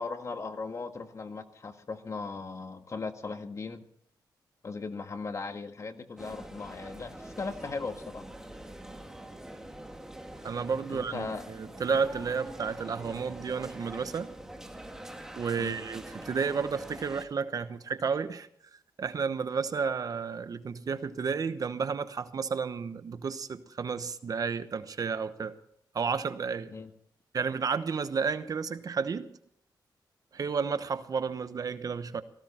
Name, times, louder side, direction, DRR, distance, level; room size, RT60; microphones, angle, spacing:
voice 1, 0.0-3.8 4.6-8.3 10.9-11.4 15.6-15.8 26.7-26.9, left 4 dB, 40° left, 1.7 m, -38 dB
sound 1, 6.2-17.2, right 1 dB, 5° right, 2.1 m, -45 dB
voice 2, 10.4-14.3 15.3-18.5 19.0-25.6 25.9-26.7 27.3-29.4 30.3-32.2, right 5 dB, 50° right, 1.0 m, -32 dB
18.0 x 15.5 x 4.4 m
cardioid pair, 95°, 8 cm